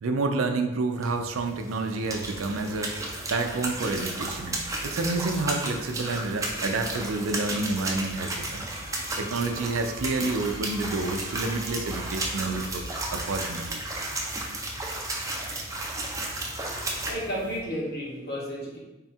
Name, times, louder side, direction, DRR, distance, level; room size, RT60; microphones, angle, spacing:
voice 1, 0.0-8.6 9.2-12.8 13.1-13.8, right 3 dB, 90° right, 6 dB, 0.5 m, -29 dB
sound 1, 0.9-17.1, right 2 dB, 15° right, 0.5 m, -34 dB
sound 2, 2.2-17.6, right 1 dB, 40° right, 0.9 m, -45 dB
Screech, 8.5-13.9, right 1 dB, 85° left, 1.2 m, -46 dB
voice 2, 16.8-18.8, equal, 55° left, -4 dB, 1.1 m, -33 dB
3.6 x 2.3 x 4.2 m, 1.0 s
head